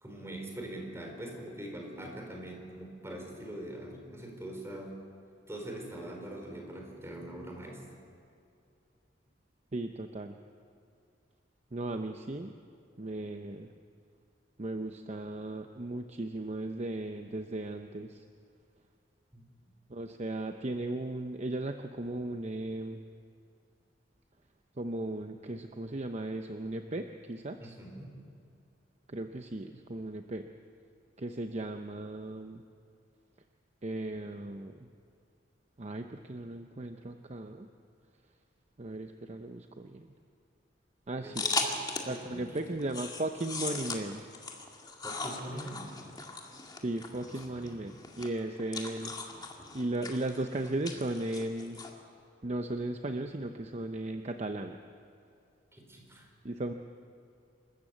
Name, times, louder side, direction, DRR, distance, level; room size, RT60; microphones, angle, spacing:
voice 1, 0.0-5.0 5.5-7.8 19.3-19.4 27.6-28.1 41.2-41.7 42.0-42.8 45.0-45.9 47.2-47.7 55.7-56.3, right 1 dB, 15° right, 1 dB, 4.2 m, -43 dB
voice 2, 9.7-10.3 11.7-12.5 13.0-13.7 14.6-18.2 19.9-23.0 24.8-27.8 29.1-30.5 31.2-32.6 33.8-34.9 35.8-37.7 38.8-40.1 41.1-41.5 42.1-44.2 46.8-49.1 49.7-51.8 52.4-54.8 56.4-56.7, right 2 dB, 40° right, 6 dB, 0.8 m, -36 dB
sound 1, 41.3-42.2 42.6-51.9, left 3 dB, 25° left, 2.1 m, -38 dB
27.5 x 13.5 x 8.0 m, 2.5 s
head